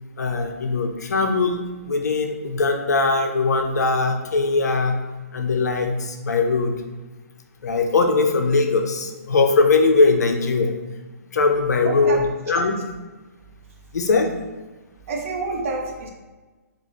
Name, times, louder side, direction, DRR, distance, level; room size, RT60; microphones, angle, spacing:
voice 1, 0.2-5.0 5.3-6.7 7.6-10.7 11.3-12.8 13.9-14.3, left 3 dB, 75° left, 4 dB, 0.6 m, -20 dB
voice 2, 11.8-12.2 12.6-12.7 15.1-16.1, right 3 dB, 55° right, 0 dB, 0.8 m, -28 dB
3.8 x 2.4 x 3.0 m, 1.2 s
hypercardioid pair, 135°, 9 cm